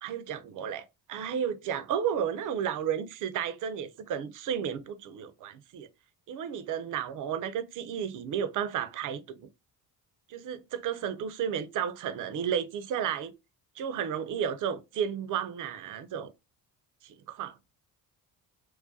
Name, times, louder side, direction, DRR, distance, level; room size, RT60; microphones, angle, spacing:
voice 1, 0.0-5.9 6.3-9.5 10.3-13.3 13.8-16.3 17.0-17.6, right 8 dB, 40° right, 0.5 m, -33 dB
2.3 x 2.1 x 2.6 m
hypercardioid pair, 50°, 49 cm